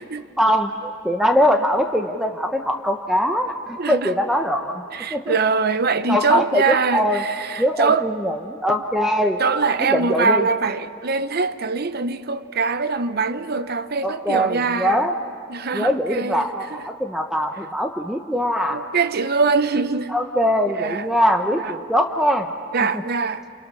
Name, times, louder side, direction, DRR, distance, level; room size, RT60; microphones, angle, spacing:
voice 1, 0.4-4.8 5.1-5.3 6.1-7.2 7.6-9.4 9.8-10.4 14.0-15.1 15.7-18.8 20.1-22.5, equal, ahead, 0.9 m, -22 dB
voice 2, 3.8-4.1 4.9-8.1 9.4-15.1 15.5-16.8 18.7-20.2 20.7-21.1 21.5-21.7 22.7-23.4, right 4 dB, 55° right, 0.9 m, -23 dB
30.0 x 27.5 x 6.3 m
head